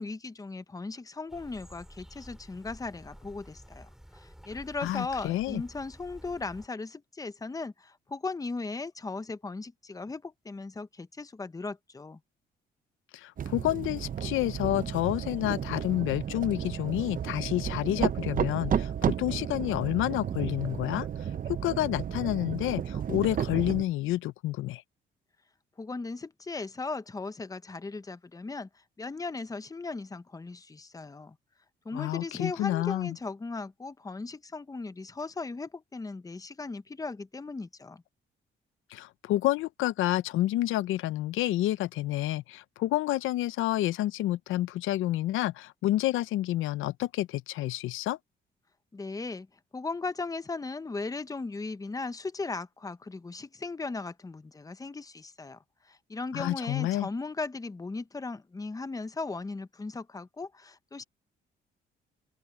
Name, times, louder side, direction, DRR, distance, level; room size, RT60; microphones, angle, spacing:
voice 1, 0.0-12.2 25.8-28.7 29.0-31.4 31.8-38.0 48.9-49.5 49.7-55.6 55.8-61.0, left 3 dB, 15° left, 0.9 m, -37 dB
sound 1, 1.3-6.7, equal, ahead, 4.8 m, -51 dB
voice 2, 4.8-5.6 13.1-21.1 21.5-24.8 31.9-33.2 38.9-48.2 56.3-57.1, left 15 dB, 85° left, 0.6 m, -29 dB
sound 2, 13.4-23.8, right 8 dB, 45° right, 0.7 m, -32 dB
open air
cardioid pair, 90°, 20 cm